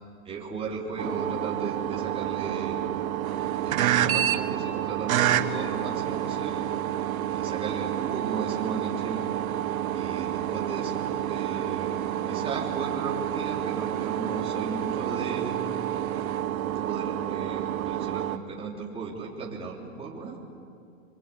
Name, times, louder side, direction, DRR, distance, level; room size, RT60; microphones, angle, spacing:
voice 1, 0.2-2.9 3.6-6.6 7.3-9.2 9.9-15.6 16.7-20.4, right 4 dB, 15° right, -3 dB, 3.6 m, -36 dB
sound 1, 1.0-18.4, right 11 dB, 75° right, 1.5 m, -29 dB
26.5 x 23.5 x 8.6 m, 2.5 s
hypercardioid pair, 150°, 42 cm